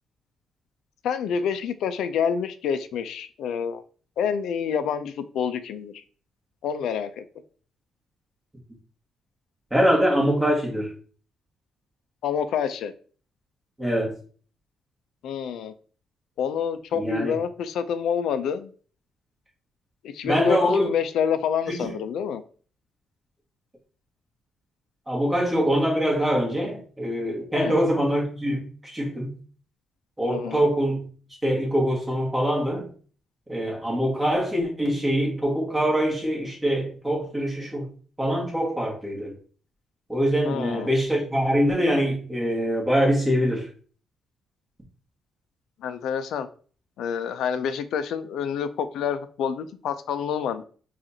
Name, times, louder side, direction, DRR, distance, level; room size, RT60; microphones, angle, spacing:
voice 1, 1.0-3.8 4.2-5.9 6.6-7.2 12.2-12.9 15.2-15.7 16.4-18.7 20.0-22.4 27.5-27.8 30.3-30.6 40.5-40.9 45.8-46.5 47.0-50.6, left 7 dB, 75° left, 11 dB, 0.4 m, -27 dB
voice 2, 9.7-10.9 13.8-14.1 16.9-17.4 20.2-20.9 21.7-22.0 25.1-29.4 30.2-31.0 31.4-32.9 33.5-37.9 38.2-39.3 40.1-43.7, equal, 15° right, -3 dB, 1.6 m, -24 dB
5.0 x 2.5 x 2.7 m, 0.42 s
cardioid pair, 90°, 0 cm